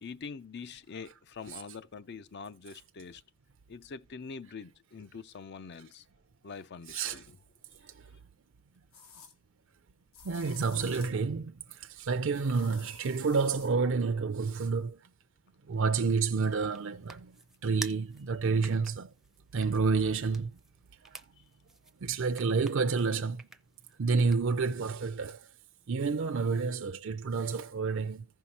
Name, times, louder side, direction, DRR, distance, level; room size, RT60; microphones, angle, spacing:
voice 1, 0.0-3.2 3.7-6.0 6.4-7.4, left 5 dB, 55° left, 0.5 m, -44 dB
voice 2, 6.9-7.2 7.8-8.1 10.2-15.0 15.7-17.4 17.6-19.1 19.5-20.5 21.0-21.2 22.0-23.4 24.0-25.5 25.9-28.3, right 4 dB, 65° right, 0.5 m, -29 dB
sound 1, 7.7-7.8 8.9-9.3 10.1-11.2 12.3-13.7, left 5 dB, 80° left, 1.6 m, -51 dB
sound 2, 16.0-24.7, right 2 dB, ahead, 0.5 m, -50 dB
15.0 x 5.6 x 2.9 m
head